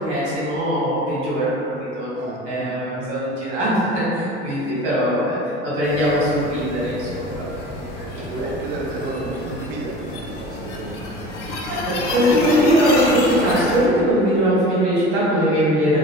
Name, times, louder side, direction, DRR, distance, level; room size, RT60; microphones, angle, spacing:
voice 1, 0.0-1.5 1.9-2.1 2.4-5.4 5.6-7.4 7.7-8.0 8.3-8.5 9.2-9.3 12.0-16.0, equal, 80° right, -9 dB, 1.4 m, -20 dB
voice 2, 2.1-3.0 8.1-11.2, right 2 dB, 30° right, -2 dB, 0.3 m, -31 dB
sound 1, 5.8-13.9, left 1 dB, 80° left, 0.6 m, -29 dB
2.8 x 2.1 x 3.2 m, 2.9 s
hypercardioid pair, 80°, 35 cm